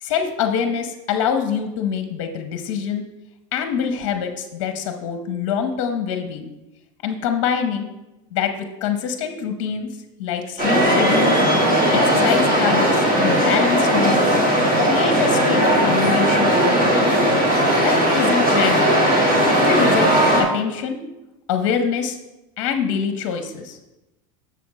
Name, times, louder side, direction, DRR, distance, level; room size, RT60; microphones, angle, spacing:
voice 1, 0.0-3.1 3.5-6.5 7.0-7.9 8.3-8.5 8.8-9.9 10.2-11.4 11.9-14.4 14.8-17.0 17.8-19.0 19.5-21.0 21.5-22.2 22.6-23.8, left 7 dB, 50° left, 6 dB, 0.8 m, -25 dB
sound 1, 10.6-20.4, equal, 30° right, 2.4 m, -17 dB
7.0 x 4.2 x 6.2 m, 0.97 s
supercardioid pair, 180°, 17 cm